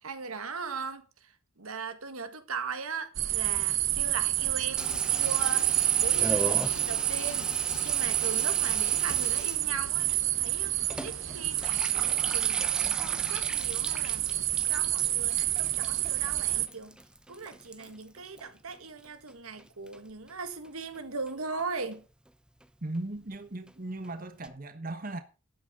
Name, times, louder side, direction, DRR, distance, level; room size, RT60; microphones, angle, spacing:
voice 1, 0.0-5.7 6.0-7.5 7.8-10.8 11.0-17.0 17.3-22.0, right 4 dB, 90° right, 1.8 m, -39 dB
sound 1, 3.1-16.7, right 14 dB, 60° right, 1.1 m, -28 dB
Water tap faucet / Bathtub (filling or washing), 4.8-19.3 19.6-20.3 20.6-20.7 20.9-21.0 21.3-21.6 21.9-22.0 22.3-22.4 22.6-22.7 22.9-23.0 23.3-23.4 23.7-23.8 24.0-24.1 24.4-24.5, right 1 dB, 5° right, 0.8 m, -40 dB
voice 2, 22.8-25.2, right 2 dB, 40° right, 1.2 m, -37 dB
13.0 x 9.1 x 5.2 m
head